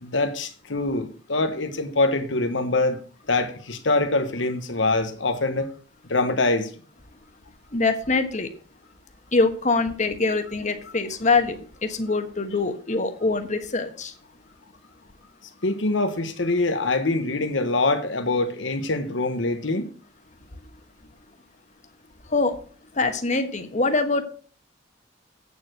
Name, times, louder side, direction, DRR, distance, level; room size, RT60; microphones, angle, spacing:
voice 1, 0.0-3.0 3.3-5.7 6.1-6.7 15.6-19.9, left 2 dB, 85° left, 1.3 m, -24 dB
voice 2, 7.7-8.5 9.3-14.1 22.3-22.6 22.9-24.2, left 3 dB, 40° left, 1.3 m, -24 dB
8.6 x 7.2 x 6.4 m
head